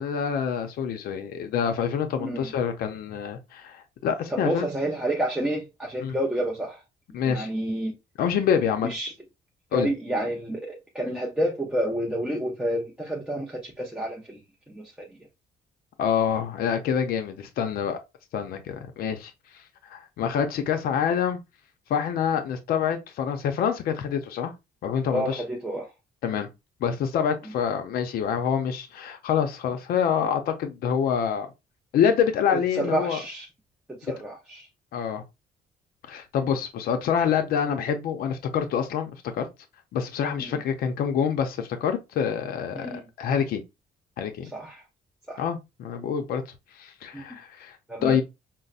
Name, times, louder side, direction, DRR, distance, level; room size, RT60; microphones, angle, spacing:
voice 1, 0.0-4.7 6.0-6.2 7.1-7.5 8.2-8.9 9.7-9.9 16.0-18.0 18.3-19.3 19.9-21.4 21.9-24.5 24.8-25.4 26.2-26.5 26.8-31.5 31.9-33.2 34.9-35.2 36.1-39.5 39.9-43.6 44.2-44.5 45.4-46.4 46.8-47.8 48.0-48.2, left 7 dB, 70° left, 0.5 m, -26 dB
voice 2, 2.2-2.5 4.3-6.8 7.2-7.9 8.8-9.1 9.7-14.4 14.7-15.1 25.1-25.9 32.5-33.5 33.9-34.7 40.4-40.5 42.7-43.0 44.5-44.8 45.3-45.4 47.1-47.3 47.9-48.2, right 1 dB, 5° right, 0.5 m, -29 dB
5.3 x 2.0 x 2.4 m
cardioid pair, 180°, 16 cm